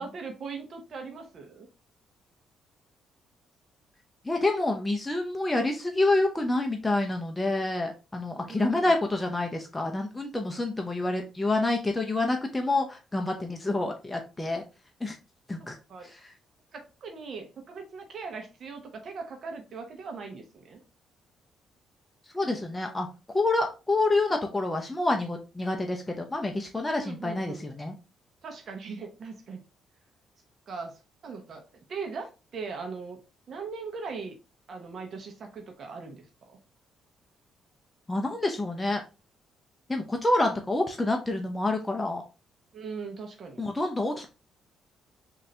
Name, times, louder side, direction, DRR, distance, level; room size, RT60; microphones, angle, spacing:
voice 1, 0.0-1.7 8.3-8.9 15.9-16.1 16.7-20.8 27.0-27.7 28.4-29.6 30.7-33.2 33.5-34.4 34.7-36.6 42.7-43.6, right 4 dB, 55° right, 4 dB, 0.9 m, -40 dB
voice 2, 4.2-14.6 15.0-15.2 15.5-15.8 16.1-16.3 22.3-27.9 38.1-39.0 39.9-42.2 43.6-44.3, left 2 dB, 15° left, 3 dB, 0.7 m, -28 dB
3.8 x 2.8 x 3.2 m, 0.30 s
cardioid pair, 90°, 0 cm